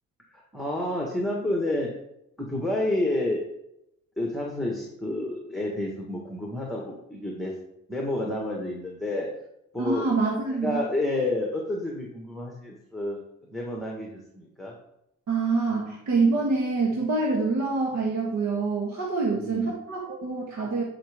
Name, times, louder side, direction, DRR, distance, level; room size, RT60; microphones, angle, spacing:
voice 1, 0.3-1.9 2.4-3.4 4.2-7.5 7.9-9.3 9.7-10.1 10.5-13.2 13.5-14.7 19.3-19.7, left 1 dB, ahead, -1 dB, 1.6 m, -29 dB
voice 2, 9.8-10.8 15.3-20.8, right 3 dB, 65° right, -2 dB, 1.7 m, -26 dB
10.0 x 5.1 x 3.6 m, 0.83 s
cardioid pair, 90°, 30 cm